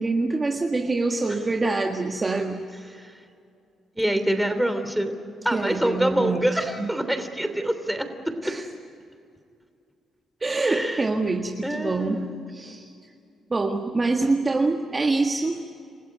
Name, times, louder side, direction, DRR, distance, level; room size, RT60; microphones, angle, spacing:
voice 1, 0.0-2.9 5.5-6.5 6.8-6.9 8.4-8.6 10.4-12.2 12.5-12.9 13.5-15.6, right 3 dB, 25° right, 2 dB, 1.7 m, -25 dB
voice 2, 3.9-5.1 5.4-8.6 10.6-11.1 11.6-12.4, right 1 dB, 5° right, 8 dB, 3.0 m, -26 dB
28.5 x 15.5 x 9.5 m, 2.4 s
cardioid pair, 90°, 0 cm